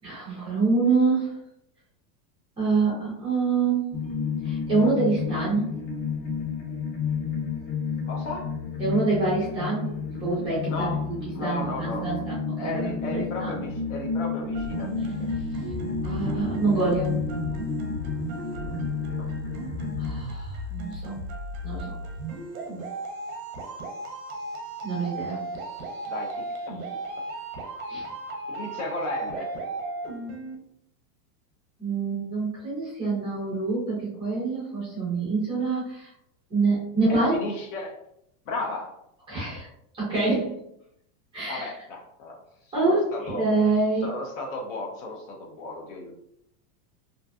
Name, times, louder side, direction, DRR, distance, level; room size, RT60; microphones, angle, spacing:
voice 1, 0.0-1.3 2.6-4.0 4.4-5.8 8.8-9.9 10.2-10.9 11.4-13.6 16.0-17.2 20.0-21.1 21.6-21.9 24.8-25.4 27.9-28.1 31.8-36.1 36.5-37.3 39.3-39.7 40.0-40.6 41.3-41.7 42.7-44.1, right 3 dB, 10° right, -8 dB, 0.5 m, -26 dB
sound 1, 3.9-20.2, left 5 dB, 75° left, 1.2 m, -31 dB
voice 2, 8.1-8.5 10.7-12.2 12.6-15.3 18.6-19.2 26.1-26.8 28.5-29.5 37.1-38.0 38.5-39.0 41.5-43.5 44.0-46.1, left 2 dB, 50° left, 1 dB, 0.5 m, -35 dB
sound 2, 14.5-30.6, right 2 dB, 55° right, 0.6 m, -35 dB
2.5 x 2.2 x 2.3 m, 0.77 s
supercardioid pair, 160°, 49 cm